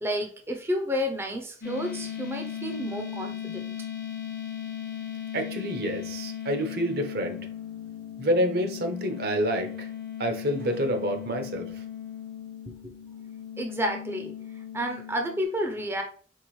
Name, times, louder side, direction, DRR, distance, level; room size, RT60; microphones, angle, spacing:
voice 1, 0.0-3.7 12.8-12.9 13.6-14.3 14.7-16.0, equal, 15° right, 0.5 m, -30 dB
sound 1, 1.6-15.4, left 9 dB, 55° left, 0.7 m, -37 dB
voice 2, 5.3-7.4 8.2-9.9 10.2-11.7, equal, 60° right, 0.7 m, -28 dB
4.5 x 3.4 x 3.1 m
head